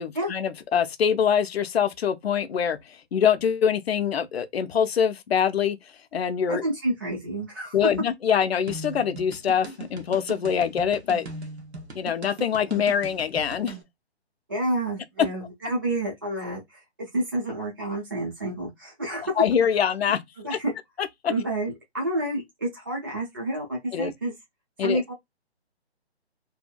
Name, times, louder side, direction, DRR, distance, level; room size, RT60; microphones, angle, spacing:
voice 1, 0.0-2.8 3.1-5.8 6.1-6.6 7.7-11.3 11.9-13.8 19.4-20.2 20.5-20.6 21.0-21.3 23.9-24.1 24.8-25.0, left 8 dB, 65° left, 0.5 m, -24 dB
voice 2, 6.5-7.8 14.5-19.3 20.4-20.7 21.3-24.3 24.8-25.1, right 1 dB, 20° right, 0.4 m, -29 dB
sound 1, 8.7-13.8, right 3 dB, 75° right, 0.9 m, -39 dB
2.7 x 2.3 x 2.2 m
figure-of-eight pair, 150°, 33 cm